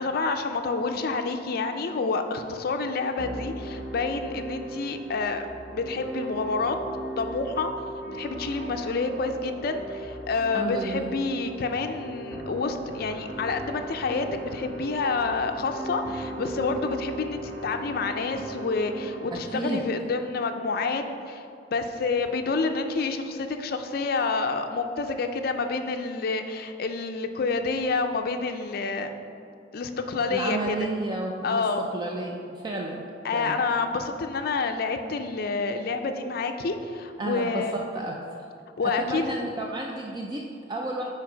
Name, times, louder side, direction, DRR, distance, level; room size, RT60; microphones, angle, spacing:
voice 1, 0.0-5.5 5.7-6.8 7.2-7.7 8.1-21.4 21.7-29.1 29.7-30.9 31.4-31.9 33.2-37.8 38.8-39.4, left 4 dB, 55° left, 6 dB, 0.4 m, -28 dB
sound 1, 3.2-19.3, right 1 dB, 80° right, 1.0 m, -38 dB
voice 2, 10.5-11.1 19.3-19.8 30.3-31.6 31.9-33.0 33.3-33.6 37.2-38.2 38.8-41.1, right 2 dB, 25° right, 0 dB, 0.4 m, -32 dB
6.0 x 4.5 x 4.9 m, 2.5 s
head